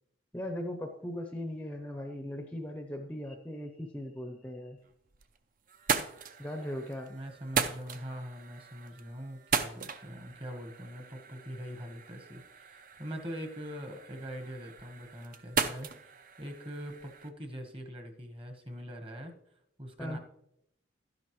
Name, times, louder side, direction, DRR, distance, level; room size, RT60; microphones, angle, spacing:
voice 1, 0.3-4.8 6.4-7.2 20.0-20.2, left 1 dB, 5° left, 4 dB, 0.6 m, -38 dB
sound 1, 4.8-5.4 5.7-17.3, right 6 dB, 40° right, 0.5 m, -37 dB
voice 2, 7.1-19.4 19.8-20.2, equal, 25° right, 5 dB, 1.2 m, -43 dB
12.0 x 10.5 x 3.1 m, 0.78 s
head